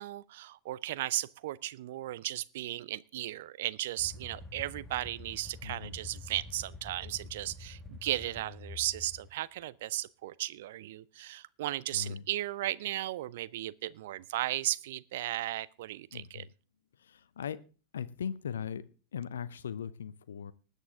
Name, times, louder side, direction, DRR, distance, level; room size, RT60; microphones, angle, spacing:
voice 1, 0.0-16.5, right 15 dB, 55° right, 0.5 m, -36 dB
sound 1, 4.0-9.3, left 3 dB, 5° left, 1.2 m, -47 dB
voice 2, 5.6-5.9 11.9-12.3 16.1-16.5 16.9-17.6 17.9-20.5, left 8 dB, 65° left, 0.6 m, -39 dB
20.0 x 8.3 x 3.7 m
figure-of-eight pair, 90°, 0 cm